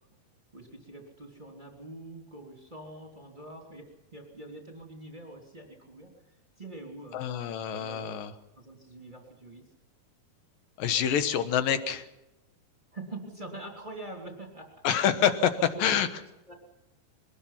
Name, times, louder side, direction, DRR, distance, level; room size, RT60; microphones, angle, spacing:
voice 1, 0.5-3.8 4.1-7.2 7.7-8.2 8.6-9.7 12.9-14.8 15.7-16.0 16.5-16.6, right 2 dB, 15° right, 0 dB, 2.7 m, -44 dB
voice 2, 7.1-8.3 10.8-12.1 14.8-15.5 15.8-16.1, left 9 dB, 70° left, 10 dB, 2.8 m, -26 dB
23.0 x 20.0 x 5.8 m, 0.93 s
omnidirectional pair, 4.4 m